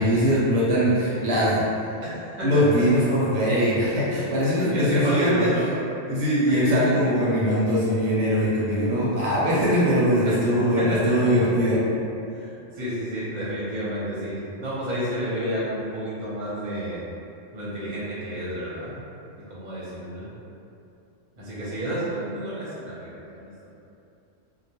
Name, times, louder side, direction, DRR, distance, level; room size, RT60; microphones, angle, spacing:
voice 1, 0.0-1.6 2.4-5.5 6.1-11.8, equal, 75° right, -8 dB, 0.9 m, -21 dB
voice 2, 2.0-2.6 3.8-3.9 4.5-5.7 6.7-7.0 10.2-11.3 12.3-17.0 17.5-19.0 19.3-20.3 21.4-23.7, equal, 40° right, -9 dB, 0.7 m, -30 dB
2.2 x 2.2 x 2.8 m, 2.7 s
omnidirectional pair, 1.3 m